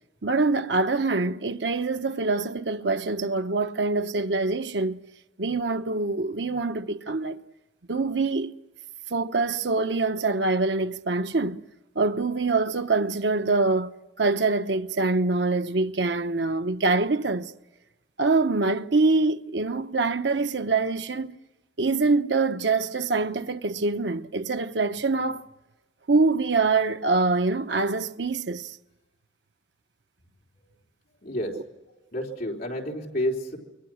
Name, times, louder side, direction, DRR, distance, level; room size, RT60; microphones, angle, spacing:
voice 1, 0.2-5.0 5.4-7.4 7.9-8.5 9.1-11.6 11.9-13.9 14.2-17.5 18.2-21.4 21.8-25.4 26.1-28.8, right 3 dB, 80° right, 1.0 m, -24 dB
voice 2, 31.2-31.6 32.1-33.6, left 1 dB, 55° left, 4.0 m, -29 dB
27.0 x 23.5 x 6.4 m
head